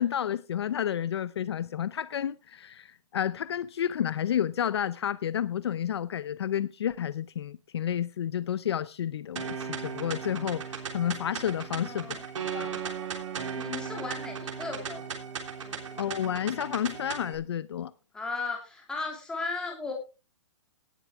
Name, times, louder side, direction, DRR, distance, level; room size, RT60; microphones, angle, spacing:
voice 1, 0.0-12.2 12.5-12.9 16.0-17.9, left 10 dB, 60° left, 0.6 m, -31 dB
sound 1, 9.4-17.4, right 6 dB, 80° right, 3.3 m, -36 dB
voice 2, 11.8-12.2 13.5-15.2 15.6-16.0 18.1-19.9, left 3 dB, 5° left, 2.8 m, -36 dB
17.5 x 8.5 x 3.5 m
hypercardioid pair, 170°, 16 cm